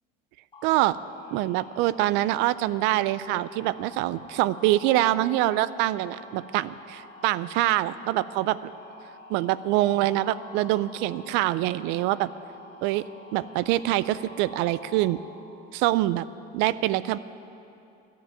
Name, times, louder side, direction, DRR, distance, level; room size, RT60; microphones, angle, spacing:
sound 1, 0.5-15.1, left 1 dB, 25° left, 2.2 m, -47 dB
voice 1, 0.6-1.0 1.3-8.7 9.3-12.3 12.8-15.2 15.7-16.2 16.5-17.2, right 15 dB, 65° right, 17 dB, 0.4 m, -25 dB
13.0 x 7.3 x 9.5 m, 2.8 s
cardioid pair, 140°, 20 cm